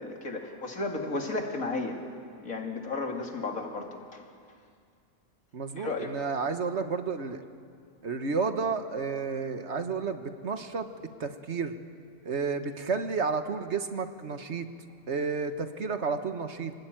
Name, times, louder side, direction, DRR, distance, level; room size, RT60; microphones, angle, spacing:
voice 1, 0.0-2.0 2.4-4.2 5.8-6.1, left 3 dB, 80° left, 2 dB, 2.9 m, -33 dB
voice 2, 5.5-7.4 8.0-10.9 11.2-11.7 12.2-14.7 15.1-16.7, right 5 dB, 55° right, 8 dB, 1.5 m, -31 dB
28.0 x 19.0 x 9.0 m, 2.3 s
omnidirectional pair, 1.4 m